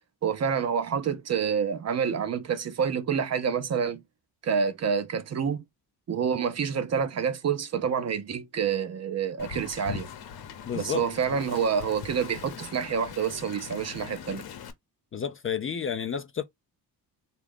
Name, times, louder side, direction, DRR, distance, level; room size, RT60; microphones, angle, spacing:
voice 1, 0.2-4.0 4.4-5.6 6.1-10.1 10.7-14.4, right 7 dB, 40° right, 0.6 m, -28 dB
Wind, 9.4-14.7, left 7 dB, 65° left, 0.9 m, -41 dB
voice 2, 10.7-11.0 11.3-11.4 15.1-16.4, left 7 dB, 35° left, 0.4 m, -31 dB
3.6 x 2.4 x 3.5 m
cardioid pair, 120°, 41 cm